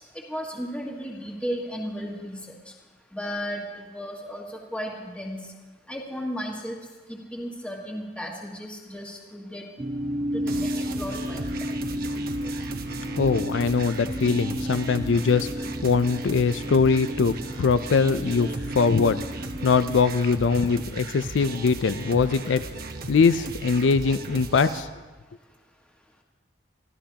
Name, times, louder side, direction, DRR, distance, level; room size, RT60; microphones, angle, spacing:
voice 1, 0.3-2.4 3.1-3.6 3.9-5.4 5.9-6.8 7.3-9.6 10.3-11.5, equal, 5° left, -1 dB, 1.6 m, -34 dB
sound 1, 9.8-19.8, equal, 15° right, 0.5 m, -32 dB
sound 2, 10.5-24.8, right 3 dB, 55° right, 1.0 m, -37 dB
voice 2, 13.2-19.2 19.6-22.6 23.1-24.9, left 5 dB, 90° left, 12 dB, 0.4 m, -22 dB
25.5 x 15.0 x 2.9 m, 1.3 s
head